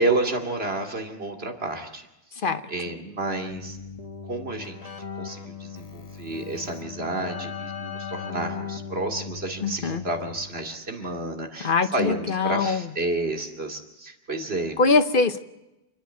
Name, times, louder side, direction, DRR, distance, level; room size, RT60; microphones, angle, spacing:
voice 1, 0.0-2.1 2.7-3.8 4.2-14.8, right 2 dB, 80° right, 3 dB, 2.8 m, -30 dB
Keyboard (musical), 3.5-10.7, left 6 dB, 35° left, 1.4 m, -38 dB
voice 2, 9.6-10.0 11.6-12.9 14.8-15.4, left 4 dB, 60° left, 10 dB, 1.1 m, -22 dB
28.0 x 10.5 x 9.4 m, 0.97 s
omnidirectional pair, 1.0 m